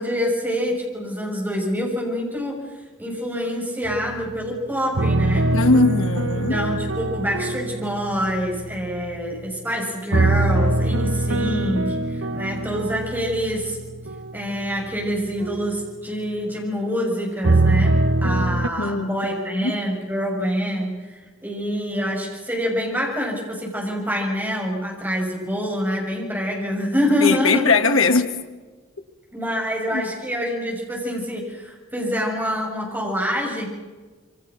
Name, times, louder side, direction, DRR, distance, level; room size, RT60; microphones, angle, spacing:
voice 1, 0.0-2.6 3.0-5.5 6.3-13.8 14.3-17.9 18.2-27.7 29.3-33.7, equal, 10° right, 6.7 m, -26 dB
sound 1, 3.8-4.5 4.9-9.5 10.1-15.8 17.4-18.7, right 2 dB, 70° right, 1.1 m, -23 dB
voice 2, 5.5-6.6 18.8-19.2 19.5-19.8 27.2-28.3 29.9-30.0, left 3 dB, 80° left, 2.1 m, -20 dB
27.5 x 24.5 x 6.2 m
head